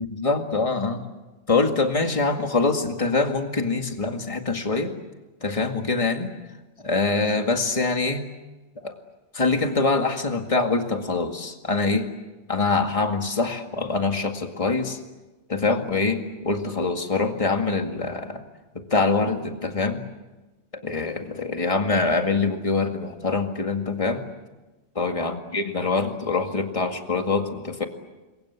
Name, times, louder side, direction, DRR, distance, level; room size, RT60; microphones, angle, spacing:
voice 1, 0.1-1.0 1.5-5.0 5.4-6.3 6.8-8.3 8.8-8.9 9.3-12.1 12.5-15.0 15.5-18.4 18.8-20.0 20.7-24.3 25.0-27.9, left 3 dB, 25° left, 4 dB, 2.2 m, -24 dB
28.5 x 23.0 x 8.3 m, 1.1 s
omnidirectional pair, 1.2 m